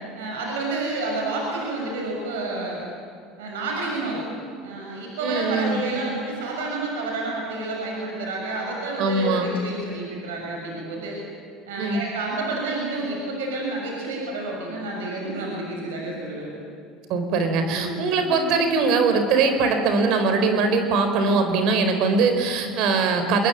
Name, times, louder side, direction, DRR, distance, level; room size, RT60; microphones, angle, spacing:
voice 1, 0.1-2.8 3.4-4.3 4.6-11.2 11.7-16.5 17.7-18.0, right 2 dB, 80° right, -1 dB, 6.6 m, -29 dB
voice 2, 5.2-5.8 9.0-9.5 11.8-12.0 17.1-23.5, right 4 dB, 60° right, 7 dB, 4.5 m, -21 dB
26.5 x 22.0 x 9.2 m, 2.3 s
hypercardioid pair, 75°, 0 cm